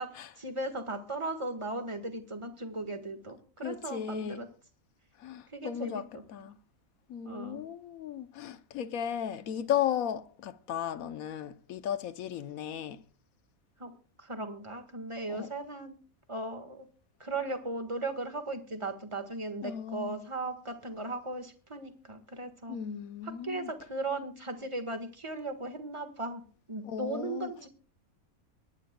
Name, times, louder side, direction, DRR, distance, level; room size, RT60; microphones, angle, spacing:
voice 1, 0.4-4.5 5.5-6.2 7.2-7.7 13.8-13.9 14.2-16.0 16.3-16.8 17.2-22.8 23.2-26.4 26.7-27.7, right 2 dB, 20° right, 1.6 m, -37 dB
voice 2, 3.6-4.4 5.2-6.0 6.3-6.6 7.1-13.0 15.3-15.5 19.6-20.2 22.7-23.7 26.8-27.5, left 9 dB, 75° left, 1.2 m, -35 dB
23.5 x 11.0 x 2.3 m
omnidirectional pair, 1.5 m